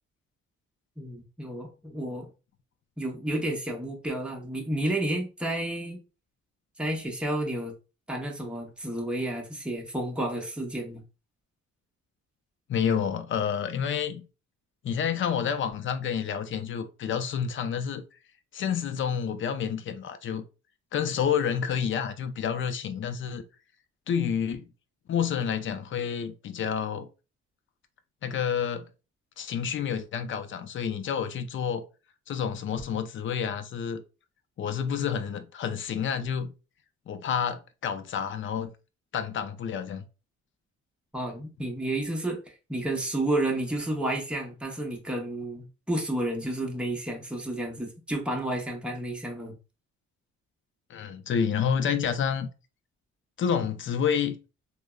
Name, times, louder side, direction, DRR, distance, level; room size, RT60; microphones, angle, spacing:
voice 1, 1.0-2.3 3.0-6.0 6.8-7.7 8.1-11.0 41.1-49.5, right 1 dB, 5° right, 0.7 m, -31 dB
voice 2, 12.7-14.3 14.8-18.0 18.5-20.4 20.9-23.4 24.1-24.7 25.1-27.1 28.2-28.9 29.4-31.8 32.3-34.0 34.6-36.5 37.1-38.7 39.1-40.0 50.9-52.5 53.4-54.4, left 7 dB, 40° left, 0.4 m, -29 dB
3.3 x 2.0 x 2.2 m
cardioid pair, 90°, 30 cm